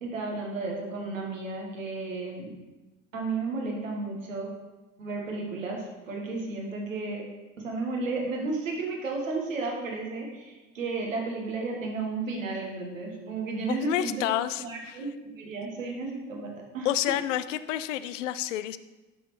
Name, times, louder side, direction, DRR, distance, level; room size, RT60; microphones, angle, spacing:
voice 1, 0.0-2.5 3.1-4.5 5.0-7.2 7.6-14.3 14.6-16.5 16.7-16.9, right 3 dB, 80° right, 0 dB, 1.4 m, -33 dB
voice 2, 13.6-15.0 16.8-18.8, left 12 dB, 70° left, 14 dB, 0.5 m, -29 dB
11.0 x 6.0 x 3.1 m, 1.1 s
figure-of-eight pair, 55°, 39 cm